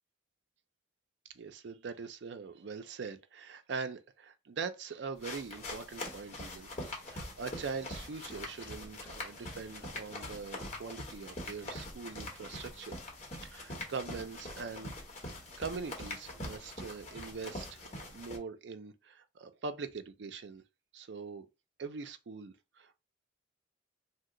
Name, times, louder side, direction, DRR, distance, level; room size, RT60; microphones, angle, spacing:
voice 1, 1.3-13.0 13.4-14.9 15.6-20.6 20.9-21.5 21.8-23.0, right 5 dB, 70° right, 0.4 m, -42 dB
sound 1, 5.2-18.4, left 1 dB, 40° left, 0.9 m, -43 dB
2.8 x 2.1 x 3.7 m
head